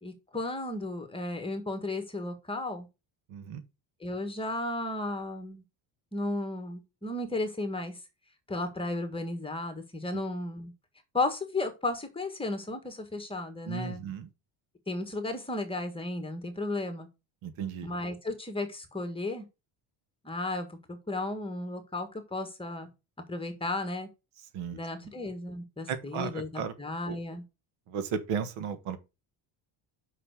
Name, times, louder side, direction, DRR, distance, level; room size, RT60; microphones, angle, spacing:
voice 1, 0.0-2.9 4.0-5.6 6.1-8.0 8.5-10.7 11.1-14.0 14.9-17.1 17.8-19.5 20.2-20.8 21.1-22.9 23.3-24.1 24.7-27.4, left 2 dB, 10° left, 1.6 m, -34 dB
voice 2, 3.3-3.6 10.1-10.2 13.7-14.3 17.4-17.9 24.5-24.8 25.9-26.7 27.1-27.2 27.9-29.0, right 7 dB, 85° right, 1.5 m, -35 dB
5.8 x 5.8 x 6.4 m
cardioid pair, 135°, 48 cm